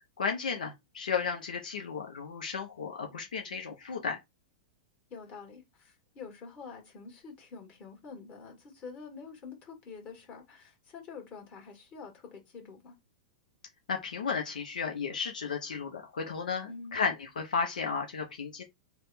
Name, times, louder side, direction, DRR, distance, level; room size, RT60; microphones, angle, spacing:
voice 1, 0.2-4.2 13.9-18.6, left 5 dB, 75° left, 0.8 m, -34 dB
voice 2, 5.1-13.0 16.6-17.0, left 5 dB, 35° left, 1.9 m, -47 dB
3.4 x 2.3 x 4.0 m
hypercardioid pair, 105°, 4 cm